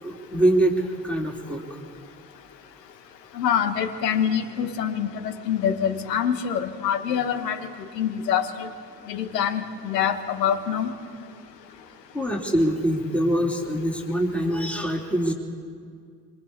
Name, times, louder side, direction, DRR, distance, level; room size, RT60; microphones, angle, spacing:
voice 1, 0.0-1.6 12.1-15.3, right 1 dB, 5° left, 0 dB, 3.4 m, -24 dB
voice 2, 3.3-7.6 7.9-8.7 9.1-10.9, left 8 dB, 75° left, 11 dB, 1.5 m, -25 dB
26.5 x 24.5 x 4.8 m, 2.2 s
figure-of-eight pair, 50°, 50 cm